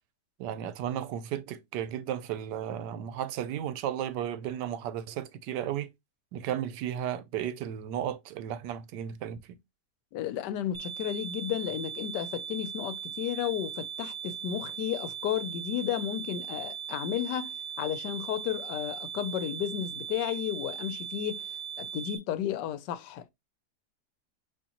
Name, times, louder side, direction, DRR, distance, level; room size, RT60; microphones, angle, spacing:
voice 1, 0.4-5.9 6.3-9.6, right 10 dB, 80° right, 1.2 m, -34 dB
voice 2, 10.1-21.5 21.8-23.3, left 11 dB, 85° left, 1.2 m, -33 dB
sound 1, 10.7-22.2, right 8 dB, 60° right, 1.1 m, -39 dB
6.4 x 2.9 x 2.8 m
omnidirectional pair, 1.8 m